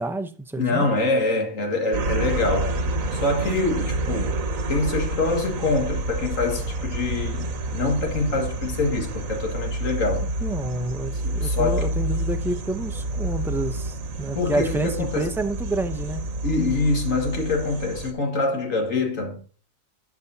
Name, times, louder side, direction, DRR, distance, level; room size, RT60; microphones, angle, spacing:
voice 1, 0.0-0.9 10.4-16.3, right 2 dB, 5° right, 0.3 m, -29 dB
voice 2, 0.6-2.8 3.1-4.4 4.7-10.3 11.2-11.9 14.4-15.3 16.4-19.4, left 3 dB, 75° left, 2.3 m, -25 dB
sound 1, 1.9-18.1, right 2 dB, 85° right, 1.4 m, -28 dB
12.0 x 5.7 x 2.7 m
omnidirectional pair, 1.4 m